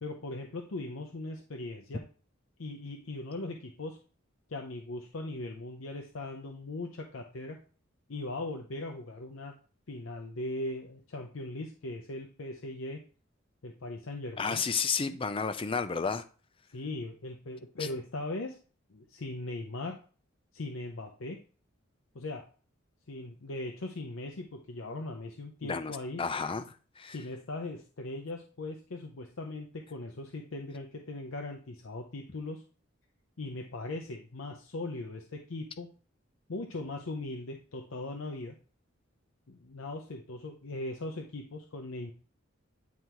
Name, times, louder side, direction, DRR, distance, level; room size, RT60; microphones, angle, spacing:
voice 1, 0.0-2.0 2.6-4.0 4.5-7.6 8.1-9.5 9.9-13.0 13.6-14.6 16.7-18.6 18.9-20.0 20.5-21.4 22.1-22.4 23.1-26.2 27.1-32.6 33.4-35.9 36.5-38.6 39.5-42.1, left 2 dB, 90° left, 0.7 m, -39 dB
voice 2, 14.4-16.2 25.6-26.6 27.0-27.2, left 5 dB, 25° left, 0.5 m, -31 dB
9.4 x 3.4 x 3.0 m
head